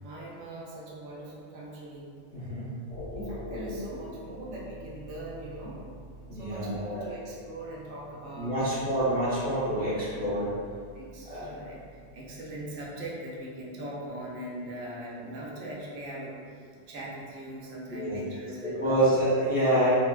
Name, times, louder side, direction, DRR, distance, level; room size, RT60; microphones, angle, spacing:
voice 1, 0.0-2.1 3.1-5.8 6.3-9.0 10.9-16.3 16.9-19.2, right 1 dB, 85° right, -4 dB, 0.9 m, -40 dB
voice 2, 2.3-2.7 6.3-7.0 8.4-10.6 11.3-11.5 17.9-18.2 18.6-19.9, right 1 dB, 10° right, -12 dB, 0.7 m, -27 dB
sound 1, 2.9-13.1, left 1 dB, 25° left, 0.7 m, -46 dB
3.2 x 2.0 x 2.3 m, 2.1 s
omnidirectional pair, 1.2 m